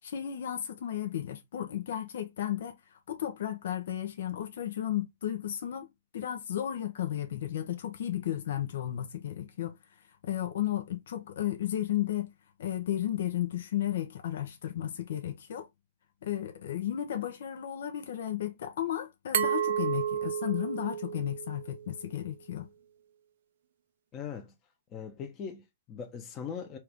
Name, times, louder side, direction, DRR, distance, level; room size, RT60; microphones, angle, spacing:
voice 1, 0.0-5.9 6.1-9.8 10.2-12.3 12.6-15.7 16.2-22.7, left 11 dB, 70° left, 0.8 m, -34 dB
Glass, 19.3-22.1, right 9 dB, 70° right, 0.5 m, -32 dB
voice 2, 24.1-24.5 24.9-26.8, left 7 dB, 30° left, 0.9 m, -40 dB
4.4 x 2.6 x 3.5 m
hypercardioid pair, 125°, 0 cm